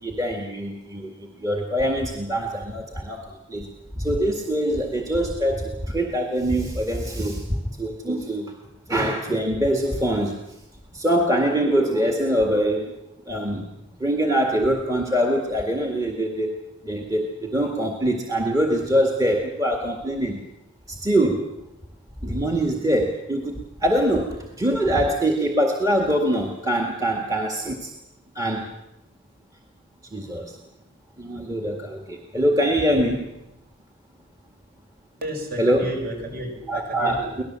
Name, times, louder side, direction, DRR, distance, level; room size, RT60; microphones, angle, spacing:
voice 1, 0.0-3.7 4.0-8.5 8.9-10.4 10.9-12.9 13.3-13.7 14.0-16.6 16.8-20.4 20.9-21.5 22.2-27.9 28.4-28.7 30.1-30.6 31.2-33.3 35.6-35.9 36.7-37.4, right 1 dB, 15° right, 2 dB, 1.9 m, -24 dB
voice 2, 35.2-37.3, equal, 50° right, 3 dB, 6.4 m, -32 dB
24.5 x 18.5 x 7.5 m, 0.89 s
head